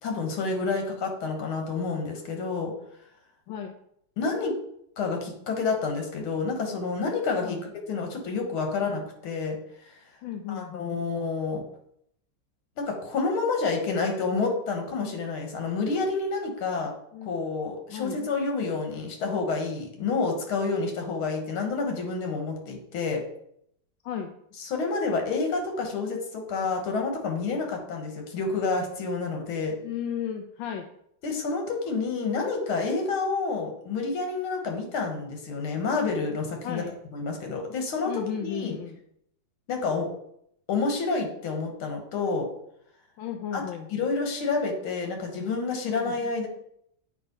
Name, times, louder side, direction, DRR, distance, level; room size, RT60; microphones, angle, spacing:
voice 1, 0.0-2.7 4.2-4.5 5.0-9.6 10.5-11.6 12.8-16.9 17.2-23.2 24.6-29.7 31.2-36.9 37.1-38.8 39.7-40.1 40.7-42.5 43.5-43.6 43.9-46.5, left 4 dB, 90° left, 3 dB, 2.1 m, -29 dB
voice 2, 10.2-10.9 17.1-17.3 17.9-18.2 24.0-24.3 29.8-30.9 36.6-36.9 38.1-39.0 43.2-43.9 46.0-46.1, left 8 dB, 75° left, 4 dB, 1.3 m, -34 dB
7.9 x 3.2 x 5.2 m, 0.72 s
omnidirectional pair, 2.3 m